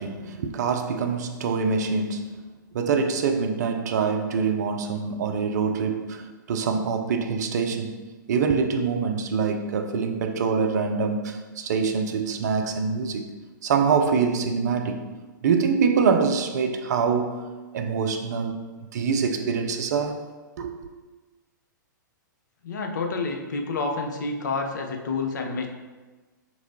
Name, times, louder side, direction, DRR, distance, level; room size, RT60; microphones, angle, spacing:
voice 1, 0.0-2.4 2.7-8.0 8.3-13.3 13.6-15.0 15.4-17.5 17.7-18.6 18.9-20.2 20.6-20.7, right 5 dB, 55° right, 6 dB, 0.5 m, -25 dB
voice 2, 22.6-25.7, left 3 dB, 65° left, 3 dB, 0.6 m, -29 dB
6.0 x 3.0 x 2.7 m, 1.3 s
figure-of-eight pair, 110°, 11 cm